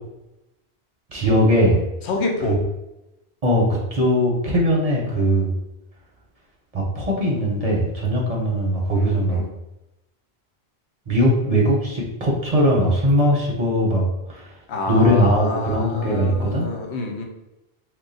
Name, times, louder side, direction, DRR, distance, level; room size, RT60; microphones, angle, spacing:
voice 1, 1.1-1.8 2.5-2.6 3.4-5.5 6.7-9.4 11.1-14.5 14.9-16.6, equal, 40° right, -2 dB, 0.6 m, -20 dB
voice 2, 2.0-2.6 8.9-9.5 14.7-17.2, left 3 dB, 90° left, 2 dB, 0.9 m, -27 dB
2.9 x 2.2 x 3.9 m, 0.94 s
omnidirectional pair, 1.1 m